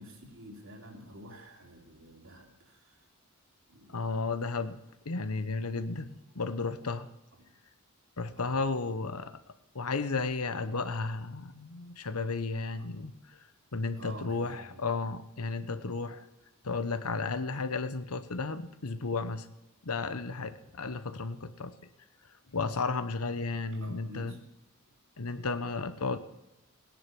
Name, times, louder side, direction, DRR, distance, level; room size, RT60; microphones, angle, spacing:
voice 1, 0.0-3.1 3.7-4.0 7.4-7.5 8.3-8.8 12.8-12.9 13.9-15.1 23.7-24.4, equal, 60° right, 1 dB, 3.4 m, -50 dB
voice 2, 3.9-6.1 6.3-7.1 8.2-9.4 9.7-13.4 13.7-16.3 16.6-19.5 19.8-21.7 22.5-24.4 25.2-26.2, left 3 dB, 90° left, 12 dB, 1.1 m, -33 dB
18.0 x 10.5 x 6.0 m, 0.97 s
head